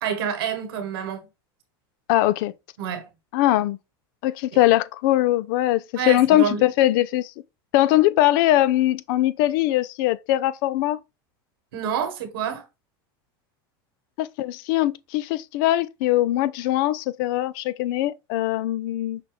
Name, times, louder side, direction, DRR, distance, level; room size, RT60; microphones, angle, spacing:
voice 1, 0.0-1.2 2.8-3.1 5.9-6.6 11.7-12.6, right 8 dB, 80° right, 1.3 m, -28 dB
voice 2, 2.1-2.5 3.3-3.8 4.2-7.3 7.7-11.0 14.2-19.2, left 15 dB, 65° left, 0.4 m, -21 dB
5.7 x 2.3 x 3.3 m
supercardioid pair, 110°, 12 cm